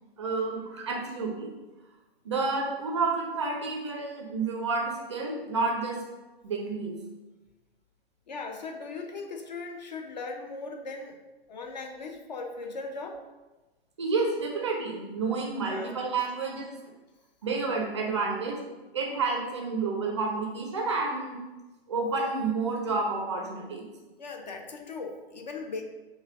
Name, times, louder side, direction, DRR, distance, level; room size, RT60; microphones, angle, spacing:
voice 1, 0.2-1.5 2.2-6.0 6.4-7.0 14.0-16.7 17.4-18.6 18.9-21.4 21.9-23.9, right 4 dB, 30° right, 0 dB, 0.4 m, -30 dB
voice 2, 8.3-11.2 11.5-13.2 15.6-15.9 24.2-25.8, left 3 dB, 45° left, 4 dB, 0.4 m, -38 dB
5.0 x 2.1 x 2.4 m, 1.1 s
figure-of-eight pair, 120°, 31 cm